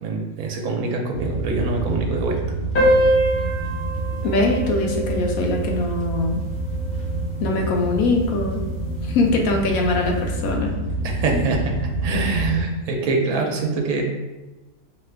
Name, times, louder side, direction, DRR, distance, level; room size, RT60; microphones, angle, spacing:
voice 1, 0.0-2.4 11.0-11.8 12.0-14.0, right 3 dB, 75° right, 1 dB, 1.0 m, -24 dB
sound 1, 1.1-12.6, right 2 dB, 45° right, 0.9 m, -27 dB
sound 2, 2.7-7.7, equal, 45° left, 1.0 m, -24 dB
voice 2, 4.2-6.4 7.4-8.6 9.0-10.7 11.3-11.5, left 2 dB, 75° left, 1 dB, 1.0 m, -22 dB
2.9 x 2.3 x 3.3 m, 1.1 s
omnidirectional pair, 1.5 m